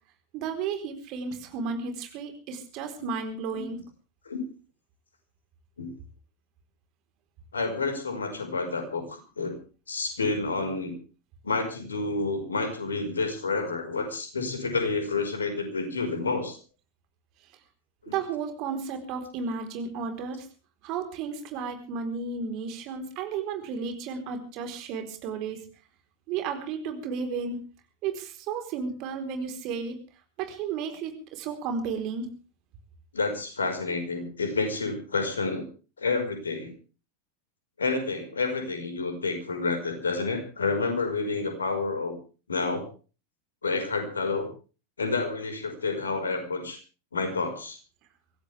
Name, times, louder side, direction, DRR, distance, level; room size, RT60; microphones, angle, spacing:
voice 1, 0.3-3.8 18.1-20.5 20.8-25.6 26.3-27.6 28.0-30.0 30.4-32.3, right 5 dB, 40° right, 6 dB, 4.2 m, -33 dB
voice 2, 7.5-9.6 9.9-10.9 11.4-16.6 18.0-18.2 33.1-35.6 36.0-36.7 37.8-42.2 42.5-42.9 43.6-44.5 45.0-46.8 47.1-47.8, left 3 dB, 70° left, 6 dB, 5.2 m, -29 dB
24.0 x 16.5 x 3.5 m, 0.36 s
figure-of-eight pair, 90°, 0 cm